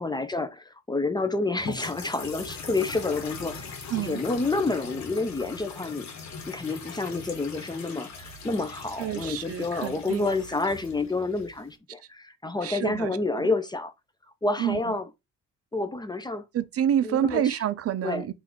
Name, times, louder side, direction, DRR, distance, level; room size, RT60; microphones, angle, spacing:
voice 1, 0.0-6.1 6.5-13.9 14.4-15.1 15.7-16.4 17.0-17.6 18.0-18.3, left 3 dB, 15° left, 0.4 m, -29 dB
sound 1, 1.6-11.7, left 4 dB, 65° left, 1.2 m, -41 dB
voice 2, 3.9-4.2 9.0-10.3 12.6-13.5 14.6-14.8 16.5-18.3, right 10 dB, 50° right, 0.4 m, -28 dB
3.7 x 2.5 x 4.4 m
cardioid pair, 90°, 30 cm